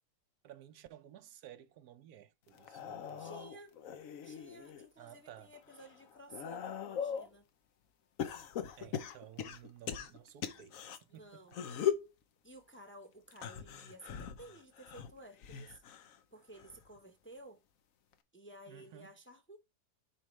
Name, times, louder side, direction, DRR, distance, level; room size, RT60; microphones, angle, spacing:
voice 1, 0.4-3.5 5.0-5.5 8.8-11.6 18.7-19.1, right 11 dB, 90° right, 1.3 m, -55 dB
sound 1, 2.5-4.9 5.4-7.3 8.2-11.0 11.5-12.1 13.3-16.2 16.5-17.0 18.1-18.2, left 8 dB, 65° left, 1.1 m, -40 dB
voice 2, 3.2-3.8 4.2-7.5 11.1-11.6 12.4-15.8 16.3-17.6 18.3-19.6, right 1 dB, 10° left, 0.8 m, -54 dB
7.2 x 4.9 x 3.2 m
omnidirectional pair, 1.6 m